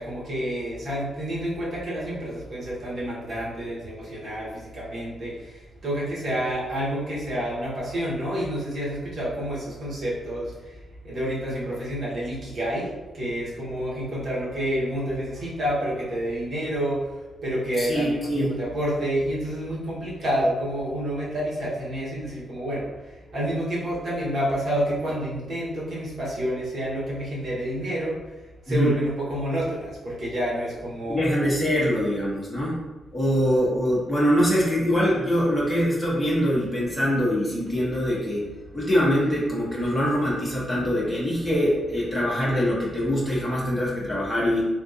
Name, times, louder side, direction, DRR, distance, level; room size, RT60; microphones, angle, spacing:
voice 1, 0.0-5.3 5.8-10.5 11.0-12.9 13.1-17.0 17.4-22.9 23.3-28.1 28.7-31.5, equal, 55° right, -7 dB, 1.3 m, -28 dB
voice 2, 17.8-18.6 28.7-28.9 31.1-32.8 33.1-38.4 38.7-44.7, equal, 5° left, -7 dB, 1.0 m, -23 dB
3.6 x 2.4 x 2.7 m, 1.1 s
cardioid pair, 95°, 0 cm